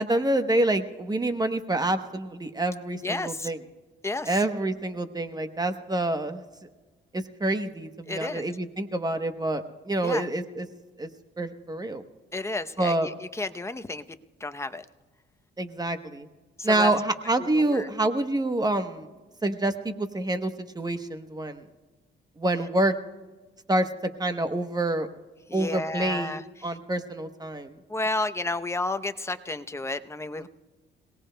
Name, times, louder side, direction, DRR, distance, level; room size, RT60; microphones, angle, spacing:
voice 1, 0.0-3.6 4.2-6.4 7.1-10.7 11.0-11.1 11.4-12.0 12.8-13.1 15.6-16.3 16.6-19.1 19.4-21.6 22.4-22.9 23.7-23.9 24.2-25.1 25.5-27.8 30.4-30.5, right 2 dB, 20° right, 8 dB, 1.0 m, -27 dB
voice 2, 3.0-3.5 4.0-4.4 8.1-8.4 10.0-10.2 12.3-14.0 14.4-14.8 16.6-16.9 17.5-17.9 25.5-26.7 27.9-30.5, left 2 dB, 15° left, 9 dB, 0.7 m, -31 dB
27.5 x 18.0 x 2.2 m, 1.3 s
cardioid pair, 90°, 20 cm